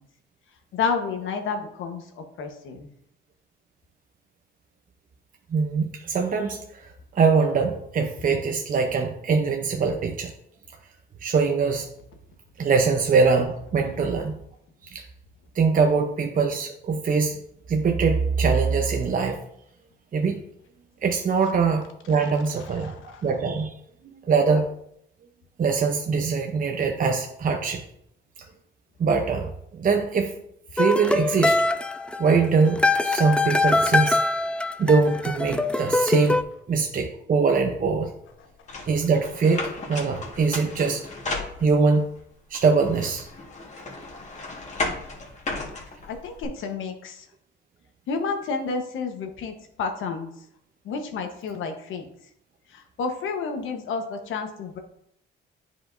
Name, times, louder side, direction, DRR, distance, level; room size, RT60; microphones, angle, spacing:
voice 1, 0.7-2.0 2.4-2.9 46.1-47.1 48.1-49.5 49.8-50.3 50.9-52.0 53.0-54.8, left 5 dB, 80° left, 5 dB, 1.1 m, -30 dB
voice 2, 5.5-10.3 11.2-11.9 12.6-14.4 14.8-15.0 15.5-17.4 17.7-19.4 20.1-20.4 21.0-22.9 23.2-23.7 24.0-24.7 25.6-27.8 29.0-30.3 30.7-31.7 32.2-34.2 34.8-36.4 36.7-38.1 38.9-41.1 41.6-42.1 42.5-43.3, right 5 dB, 45° right, 3 dB, 0.7 m, -23 dB
sound 1, 30.8-36.4, left 2 dB, 5° left, 0.4 m, -23 dB
sound 2, 38.7-42.0 42.5-46.4, left 2 dB, 35° left, 1.7 m, -34 dB
9.7 x 5.0 x 2.6 m, 0.73 s
cardioid pair, 90°, 20 cm